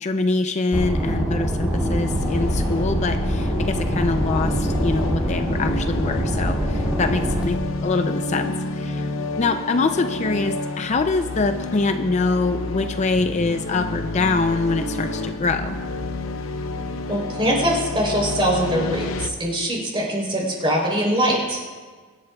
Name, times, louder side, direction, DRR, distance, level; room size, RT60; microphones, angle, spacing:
voice 1, 0.0-9.1 9.4-15.8, left 3 dB, 35° left, 7 dB, 0.4 m, -24 dB
sound 1, 0.7-7.4, equal, 5° right, 2.3 m, -24 dB
sound 2, 1.7-19.3, left 2 dB, 80° left, 0.7 m, -29 dB
voice 2, 17.1-21.6, equal, 25° right, -2 dB, 3.5 m, -22 dB
23.0 x 11.5 x 2.3 m, 1.5 s
head